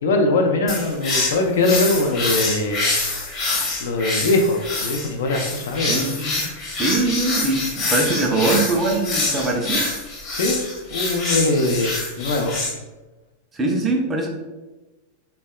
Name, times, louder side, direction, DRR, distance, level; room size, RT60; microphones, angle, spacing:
voice 1, 0.0-2.8 3.8-6.0 10.3-10.6 10.9-12.6, left 2 dB, 60° left, 3 dB, 0.3 m, -21 dB
sound 1, 0.7-12.7, left 3 dB, 35° left, 0.8 m, -25 dB
voice 2, 5.9-6.5 6.8-9.9 13.5-14.3, right 2 dB, 20° right, 1 dB, 0.4 m, -22 dB
3.3 x 2.1 x 2.2 m, 1.1 s
figure-of-eight pair, 90°, 0 cm